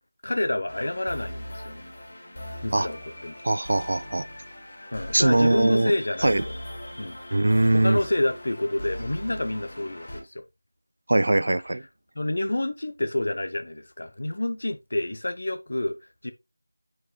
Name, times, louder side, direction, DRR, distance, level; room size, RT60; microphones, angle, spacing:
voice 1, 0.2-1.8 2.6-3.4 4.9-6.6 7.0-7.2 7.7-10.4 12.2-16.0 16.2-16.3, left 1 dB, 55° left, 0.8 m, -28 dB
sound 1, 0.7-10.2, left 1 dB, 35° left, 2.8 m, -39 dB
voice 2, 3.4-4.3 5.1-6.0 6.2-6.4 7.3-8.0 11.1-11.8, right 2 dB, 50° right, 0.3 m, -21 dB
9.9 x 4.6 x 2.2 m
figure-of-eight pair, 175°, 0 cm